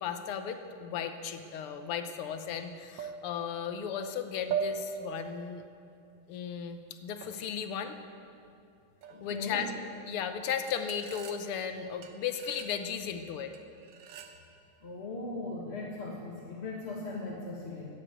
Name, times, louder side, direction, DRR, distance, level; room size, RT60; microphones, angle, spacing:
voice 1, 0.0-5.6 6.3-8.0 9.2-9.7 10.1-13.5, left 7 dB, 85° left, 8 dB, 1.8 m, -35 dB
sound 1, 1.8-1.9 3.0-3.6 4.5-5.3 7.2-7.4 9.0-9.5 9.8-10.1 10.7-11.7 12.0-12.8 13.5-14.5, right 6 dB, 65° right, 1.6 m, -39 dB
voice 2, 9.1-9.7 14.8-17.9, left 3 dB, 35° left, -2 dB, 1.4 m, -38 dB
14.5 x 8.1 x 8.9 m, 2.5 s
omnidirectional pair, 2.4 m